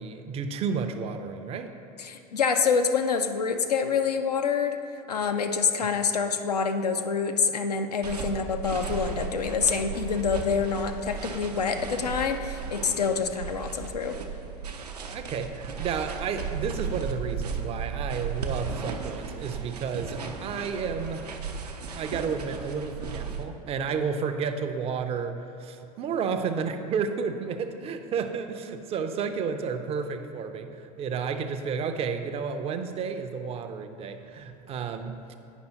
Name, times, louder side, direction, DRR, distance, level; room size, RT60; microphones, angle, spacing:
voice 1, 0.0-1.7 5.8-5.9 15.1-21.3 21.9-35.2, right 6 dB, 30° right, 8 dB, 0.4 m, -31 dB
voice 2, 2.0-4.8 5.1-14.2, left 6 dB, 80° left, 6 dB, 0.5 m, -26 dB
sound 1, 8.0-23.4, right 5 dB, 80° right, 0.6 m, -35 dB
8.9 x 5.3 x 2.9 m, 2.9 s
figure-of-eight pair, 75°, 20 cm